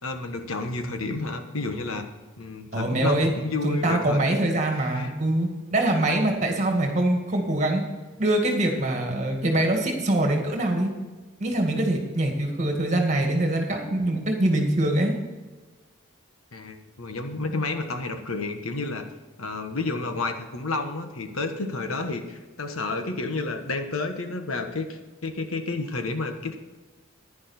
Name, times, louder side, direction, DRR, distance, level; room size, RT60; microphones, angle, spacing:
voice 1, 0.0-2.0 2.4-4.2 4.7-5.1 16.5-19.0 19.4-26.6, left 3 dB, 85° left, 6 dB, 1.4 m, -30 dB
voice 2, 2.7-3.3 3.6-7.8 8.2-10.9 11.4-15.1, right 1 dB, 35° right, 2 dB, 2.1 m, -24 dB
10.5 x 10.5 x 4.4 m, 1.2 s
head